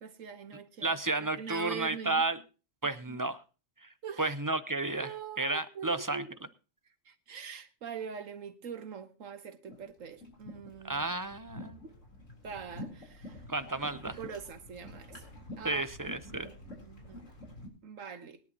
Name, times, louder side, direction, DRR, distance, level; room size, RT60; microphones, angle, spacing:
voice 1, 0.0-2.3 2.8-3.2 4.0-4.4 5.0-6.3 7.1-11.1 11.8-11.9 12.4-13.4 14.0-15.3 15.6-15.8 16.3-17.3 17.8-18.4, right 6 dB, 75° right, 1.6 m, -44 dB
voice 2, 0.8-2.4 2.8-3.4 3.8-3.9 4.2-5.1 5.4-6.2 10.8-11.8 13.5-14.2 15.6-16.5, right 2 dB, 20° right, 0.5 m, -32 dB
sound 1, 9.7-17.7, left 1 dB, 65° left, 3.9 m, -48 dB
22.5 x 10.5 x 2.9 m
omnidirectional pair, 1.4 m